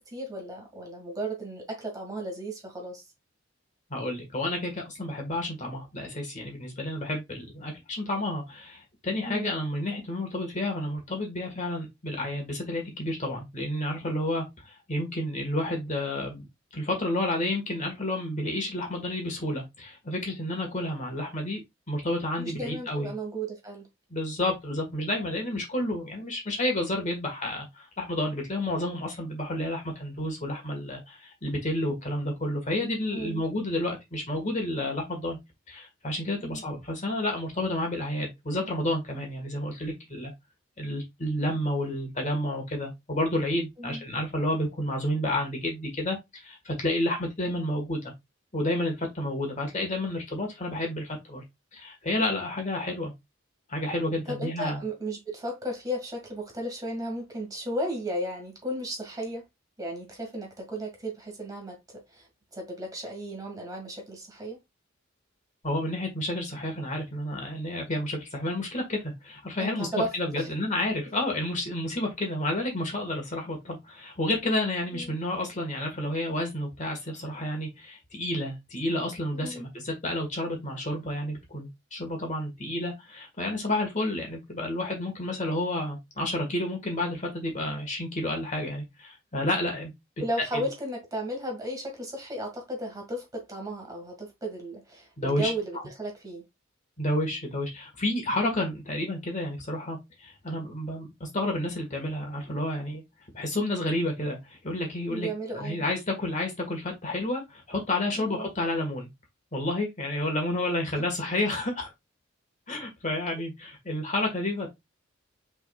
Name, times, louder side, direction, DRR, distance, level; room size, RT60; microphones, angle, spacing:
voice 1, 0.0-3.0 9.2-9.5 22.4-23.9 33.1-33.4 36.4-36.6 43.8-44.0 54.2-59.4 59.8-62.3 62.5-64.6 69.6-70.5 74.9-75.1 79.3-79.7 90.2-96.4 105.1-105.8 108.1-108.5 111.0-111.1, right 1 dB, 20° right, 1.7 m, -35 dB
voice 2, 3.9-16.5 16.7-21.6 21.9-23.1 24.1-35.4 35.7-40.3 40.8-48.1 48.5-51.4 51.7-53.1 53.7-54.8 65.6-89.9 90.5-90.6 95.2-95.8 97.0-103.0 103.3-105.3 105.5-109.1 109.5-111.9 112.7-114.8, left 1 dB, 40° left, 1.5 m, -30 dB
5.6 x 3.6 x 2.3 m
head